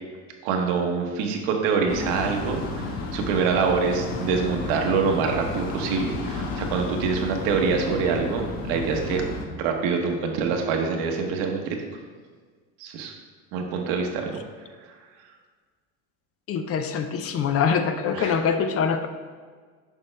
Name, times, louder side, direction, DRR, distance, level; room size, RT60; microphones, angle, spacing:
voice 1, 0.4-9.2 9.5-11.8 12.8-13.1 13.5-14.3 18.1-18.4, right 5 dB, 80° right, 3 dB, 1.1 m, -25 dB
sound 1, 1.9-9.4, left 3 dB, 65° left, 1.1 m, -32 dB
voice 2, 16.5-19.1, left 6 dB, 40° left, 8 dB, 0.5 m, -24 dB
6.9 x 5.4 x 3.3 m, 1.6 s
supercardioid pair, 105°, 37 cm